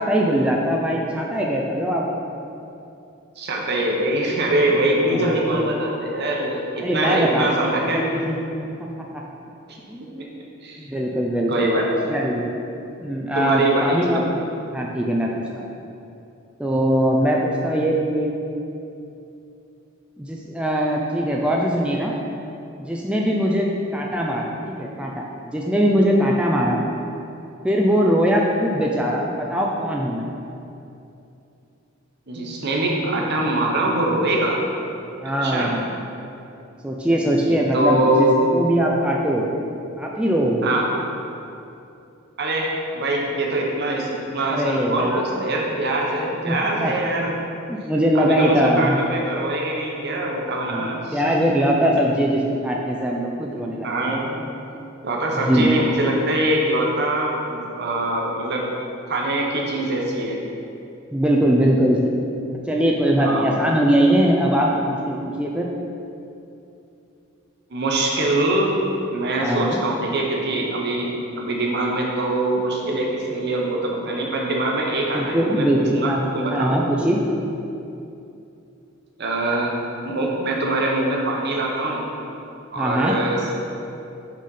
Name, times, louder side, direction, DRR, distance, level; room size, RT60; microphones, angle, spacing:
voice 1, 0.0-2.1 5.0-5.6 6.8-8.4 9.1-9.2 9.9-10.3 10.8-11.8 12.1-12.5 13.0-14.4 14.7-15.7 16.6-18.3 20.2-22.1 22.8-23.7 23.9-26.8 27.6-30.3 35.2-36.0 36.8-38.3 38.5-39.5 40.0-40.7 44.5-45.4 46.4-46.9 47.7-49.0 50.7-54.1 55.5-56.1 61.1-62.1 62.7-65.7 69.4-69.8 75.1-77.2 82.8-83.1, equal, 5° right, -2 dB, 0.4 m, -21 dB
voice 2, 3.4-8.0 9.7-9.8 10.2-10.3 10.6-10.8 11.5-12.1 13.3-14.2 32.3-34.6 35.2-35.7 37.3-38.5 40.6-40.9 42.4-47.3 48.1-51.2 51.6-51.7 53.8-54.4 55.0-58.6 59.1-60.4 63.2-63.6 67.7-68.8 69.1-75.7 75.9-76.8 79.2-79.7 80.0-82.1 82.7-83.6, right 1 dB, 55° right, -1 dB, 1.0 m, -23 dB
6.1 x 4.1 x 5.6 m, 2.7 s
head